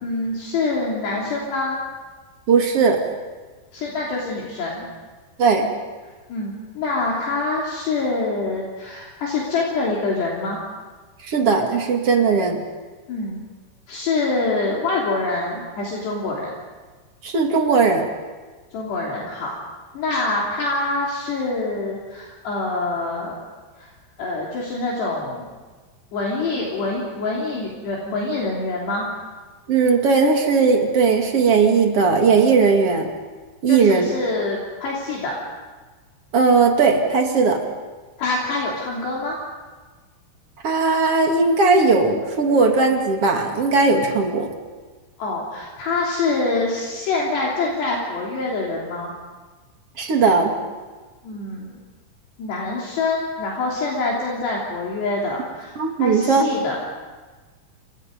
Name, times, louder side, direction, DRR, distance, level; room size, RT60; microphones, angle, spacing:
voice 1, 0.0-1.8 3.7-4.8 6.3-10.6 13.1-13.4 13.9-16.5 18.7-19.5 19.9-23.4 23.8-23.9 24.2-25.5 26.1-29.1 33.7-35.4 38.2-39.4 45.2-49.1 51.2-51.8 52.4-55.7 56.0-56.8, left 3 dB, 60° left, -4 dB, 5.1 m, -25 dB
voice 2, 2.5-3.0 5.4-5.7 11.2-12.6 17.2-18.1 29.7-33.1 33.6-34.1 36.3-37.6 40.6-44.5 50.0-50.6 55.8-56.4, right 4 dB, 45° right, 3 dB, 2.2 m, -18 dB
30.0 x 27.5 x 5.3 m, 1.3 s
omnidirectional pair, 5.6 m